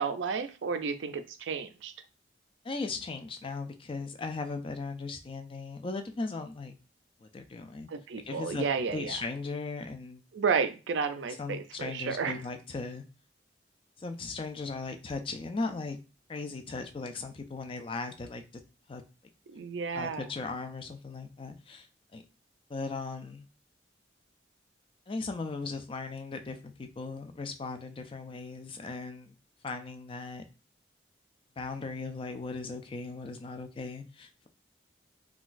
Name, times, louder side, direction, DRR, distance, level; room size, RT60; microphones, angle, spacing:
voice 1, 0.0-1.9 7.9-9.2 10.3-12.4 19.5-20.3, right 5 dB, 85° right, 9 dB, 0.4 m, -32 dB
voice 2, 2.6-6.8 7.2-7.9 8.3-10.2 11.4-13.0 14.0-16.0 16.3-18.4 18.9-19.0 19.9-21.9 22.1-22.2 22.7-23.5 25.1-29.3 29.6-30.4 31.6-34.5, left 3 dB, 30° left, 7 dB, 0.4 m, -37 dB
3.8 x 2.3 x 2.5 m, 0.32 s
head